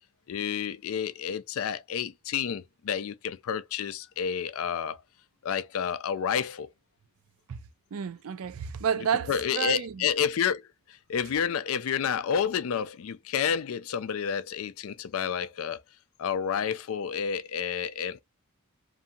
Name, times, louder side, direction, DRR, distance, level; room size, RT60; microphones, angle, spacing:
voice 1, 0.3-5.0 5.4-6.7 9.3-10.6 11.1-15.8 16.2-18.2, left 7 dB, 65° left, 0.4 m, -30 dB
voice 2, 7.9-10.1, right 7 dB, 65° right, 0.4 m, -30 dB
2.7 x 2.6 x 2.2 m
head